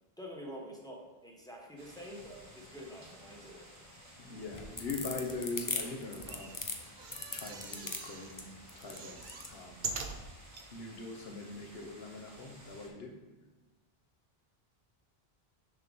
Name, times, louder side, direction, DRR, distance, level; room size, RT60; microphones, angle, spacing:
voice 1, 0.2-3.7, equal, 5° left, -2 dB, 1.1 m, -47 dB
sound 1, 1.8-12.9, equal, 15° right, 1.2 m, -55 dB
voice 2, 4.2-6.7 7.3-9.9 10.7-13.2, left 3 dB, 70° left, 2 dB, 1.2 m, -42 dB
sound 2, 4.4-9.5, left 3 dB, 25° left, 0.4 m, -39 dB
sound 3, 6.2-8.4 8.7-10.7 11.2-11.3 11.5-11.6, right 4 dB, 55° right, 0.7 m, -43 dB
6.7 x 3.8 x 5.2 m, 1.2 s
omnidirectional pair, 1.1 m